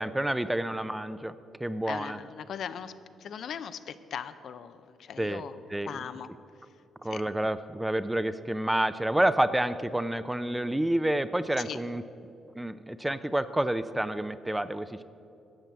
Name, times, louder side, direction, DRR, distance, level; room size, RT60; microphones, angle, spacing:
voice 1, 0.0-1.3 1.6-2.2 5.2-5.4 5.7-5.9 7.0-12.0 12.6-15.0, right 1 dB, 10° right, 13 dB, 0.5 m, -29 dB
voice 2, 1.9-2.9 3.2-5.5 5.8-6.3 7.0-7.2 11.6-11.8, left 8 dB, 65° left, 12 dB, 0.5 m, -39 dB
12.5 x 7.6 x 7.4 m, 2.6 s
cardioid pair, 90°, 0 cm